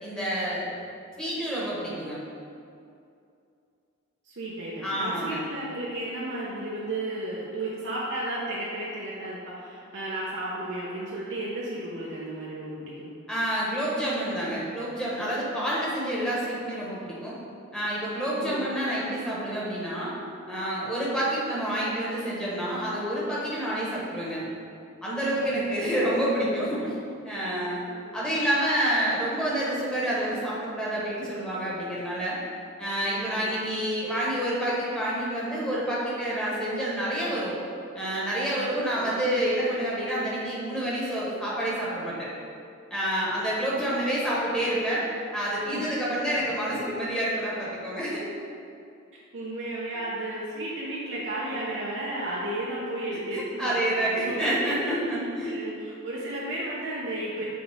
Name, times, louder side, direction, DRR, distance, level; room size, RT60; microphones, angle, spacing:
voice 1, 0.0-0.7 1.2-2.2 4.8-5.4 13.3-17.4 17.7-20.1 20.5-24.5 25.0-26.9 27.2-27.8 28.1-32.4 32.8-37.6 37.9-42.3 42.9-45.0 45.3-48.2 53.3-55.6, right 1 dB, 5° left, -7 dB, 1.3 m, -28 dB
voice 2, 4.2-13.1 18.3-18.7 27.9-28.1 33.4-33.5 39.0-39.2 45.7-45.8 49.3-53.9 54.2-54.5 55.4-57.4, right 1 dB, 65° right, -7 dB, 0.8 m, -33 dB
7.0 x 3.8 x 3.6 m, 2.5 s
head